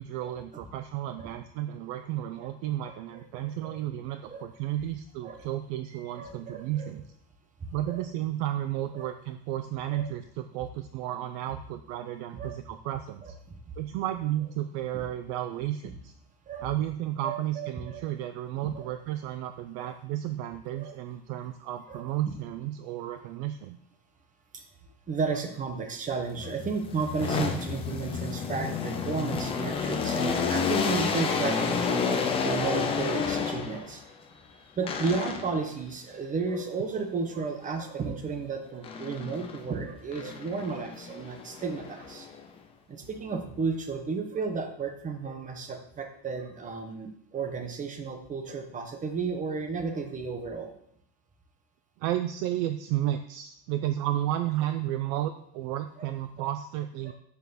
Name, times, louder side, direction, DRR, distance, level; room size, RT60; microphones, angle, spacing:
voice 1, 0.0-7.0 7.7-13.3 13.8-16.1 16.6-23.8 52.0-57.1, right 12 dB, 45° right, 9 dB, 0.5 m, -32 dB
voice 2, 3.3-3.8 4.3-4.5 5.2-5.4 6.1-6.9 7.6-8.1 8.9-9.1 9.9-10.1 12.3-12.5 13.2-13.6 14.9-15.0 16.5-16.7 17.2-18.1 18.6-18.8 19.8-19.9 20.7-20.9 21.9-22.3 24.5-24.6 25.1-34.0 34.8-42.3 42.9-50.7 56.0-56.1 56.4-56.5 57.0-57.1, right 4 dB, 15° right, 5 dB, 0.9 m, -33 dB
sound 1, 26.3-34.0 34.9-35.7 38.8-39.7 40.1-42.5, left 5 dB, 15° left, 0.3 m, -30 dB
7.0 x 6.0 x 6.9 m, 0.72 s
cardioid pair, 160°, 49 cm